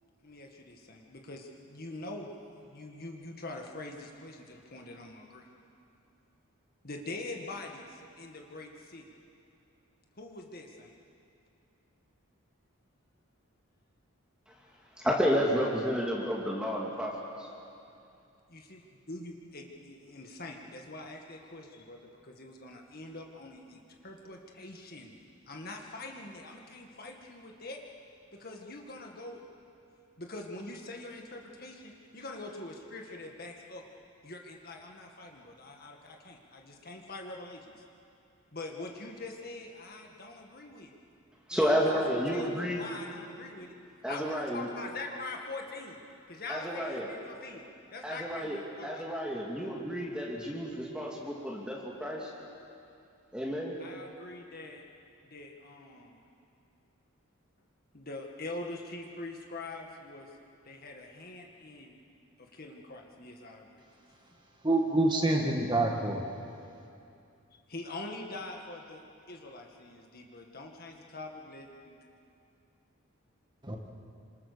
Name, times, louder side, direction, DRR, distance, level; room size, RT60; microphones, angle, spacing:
voice 1, 0.2-2.3 2.6-5.5 6.8-9.0 10.2-10.9 18.5-25.1 25.5-27.8 28.3-29.4 30.2-33.8 34.2-37.7 38.5-40.9 41.5-43.8 44.1-46.0 46.3-49.0 53.8-54.8 55.2-56.2 57.9-60.3 60.6-62.0 62.4-63.8 67.7-69.0 69.3-72.0, left 2 dB, 45° left, 1 dB, 1.9 m, -44 dB
voice 2, 15.0-17.5 41.5-42.8 44.0-44.7 46.5-47.1 48.0-52.3 53.3-53.7, equal, 5° right, -3 dB, 2.4 m, -31 dB
voice 3, 64.6-66.3 73.6-73.8, right 2 dB, 20° right, 1 dB, 1.9 m, -26 dB
27.5 x 26.5 x 6.9 m, 2.6 s
head